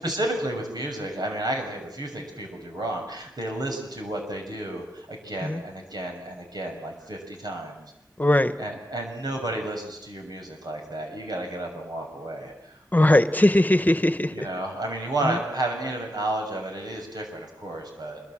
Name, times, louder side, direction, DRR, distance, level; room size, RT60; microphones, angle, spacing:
voice 1, 0.0-7.8 8.6-12.7 14.3-18.2, right 1 dB, 85° right, 2 dB, 6.8 m, -32 dB
voice 2, 8.2-8.5 12.9-14.5 15.2-15.4, left 1 dB, 25° left, 11 dB, 1.4 m, -20 dB
26.0 x 23.5 x 7.8 m, 0.79 s
wide cardioid pair, 60°, 7 cm